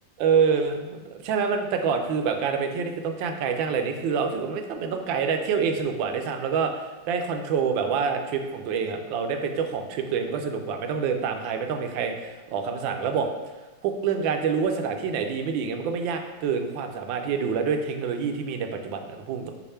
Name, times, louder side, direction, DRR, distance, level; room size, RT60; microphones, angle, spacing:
voice 1, 0.2-13.3 13.8-19.5, right 6 dB, 75° right, 5 dB, 1.3 m, -27 dB
6.6 x 2.6 x 5.5 m, 1.2 s
omnidirectional pair, 2.1 m